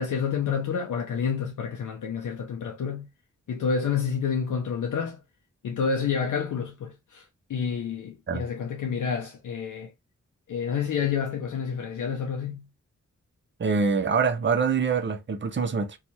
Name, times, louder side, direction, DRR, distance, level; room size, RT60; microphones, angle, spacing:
voice 1, 0.0-3.1 3.5-5.2 5.6-9.9 10.5-12.6, left 6 dB, 80° left, 0.6 m, -29 dB
voice 2, 13.6-16.0, right 5 dB, 40° right, 0.6 m, -25 dB
2.7 x 2.3 x 2.7 m
cardioid pair, 45°, 31 cm